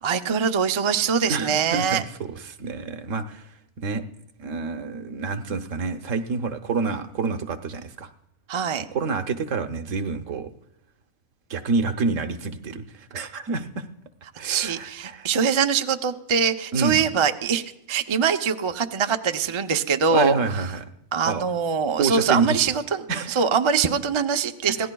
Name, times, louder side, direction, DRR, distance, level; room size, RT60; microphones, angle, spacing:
voice 1, 0.0-2.0 8.5-8.9 14.4-17.6 17.9-20.4 21.1-23.0 23.3-24.9, right 6 dB, 40° right, 7 dB, 0.4 m, -23 dB
voice 2, 1.2-3.5 3.8-4.0 4.4-8.1 8.9-10.5 11.5-13.9 14.4-15.3 16.7-17.0 20.1-20.9 21.2-21.4 22.0-22.7 23.1-23.4, right 4 dB, 65° right, 9 dB, 1.2 m, -28 dB
25.5 x 17.5 x 2.3 m, 0.84 s
omnidirectional pair, 1.4 m